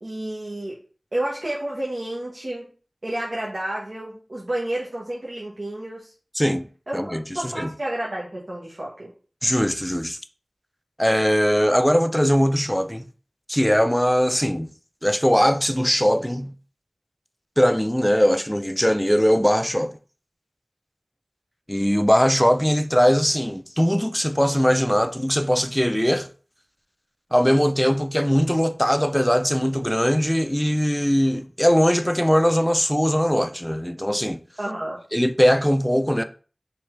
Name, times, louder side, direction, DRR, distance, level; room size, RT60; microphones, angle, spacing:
voice 1, 0.0-0.7 1.1-2.7 3.0-6.1 6.9-9.1 34.6-35.0, right 1 dB, 75° right, 0.9 m, -30 dB
voice 2, 6.4-6.7 6.9-7.7 9.4-10.2 11.0-13.1 13.5-14.7 15.0-16.5 17.6-19.9 21.7-26.3 27.3-34.4 35.1-36.2, equal, 5° left, 0.4 m, -20 dB
3.4 x 3.3 x 3.1 m
wide cardioid pair, 40°, 0 cm